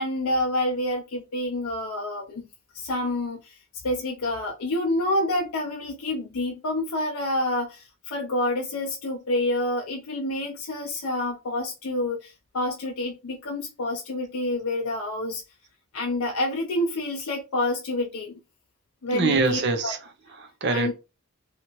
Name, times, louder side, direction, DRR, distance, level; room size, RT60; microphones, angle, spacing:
voice 1, 0.0-2.4 2.7-3.6 3.8-15.4 15.9-18.3 19.0-19.9 20.7-20.9, left 1 dB, 75° left, 0.5 m, -28 dB
voice 2, 19.1-20.9, right 4 dB, 50° right, 0.6 m, -25 dB
2.8 x 2.4 x 2.9 m
head